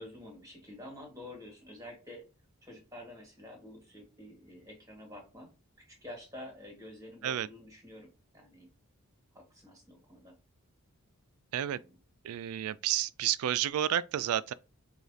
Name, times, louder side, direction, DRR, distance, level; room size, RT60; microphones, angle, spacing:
voice 1, 0.0-2.2 2.6-5.5 5.8-8.1 8.3-8.7 9.4-10.3 11.7-12.0, left 1 dB, 15° right, 1.7 m, -49 dB
voice 2, 12.2-14.5, right 11 dB, 85° right, 0.3 m, -30 dB
4.8 x 2.4 x 2.7 m
head